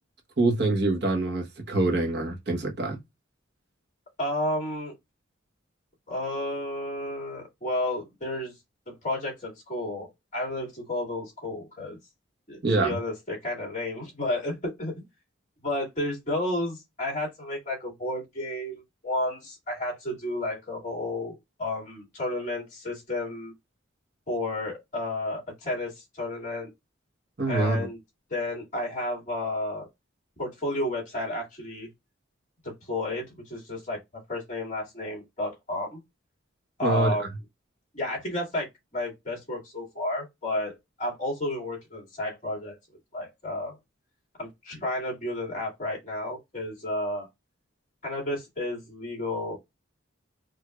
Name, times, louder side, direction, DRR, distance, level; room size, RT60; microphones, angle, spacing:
voice 1, 0.4-3.0 12.6-12.9 27.4-27.9 36.8-37.1, right 2 dB, 55° right, 1.1 m, -25 dB
voice 2, 4.2-4.9 6.1-8.5 8.9-12.0 12.5-15.1 15.6-23.5 24.3-26.7 27.5-28.0 28.3-29.8 30.4-31.9 32.9-36.0 36.8-37.2 37.9-38.7 38.9-42.8 43.1-43.8 44.4-47.3 48.0-49.6, left 1 dB, 35° left, 2.4 m, -32 dB
4.8 x 2.6 x 2.3 m
head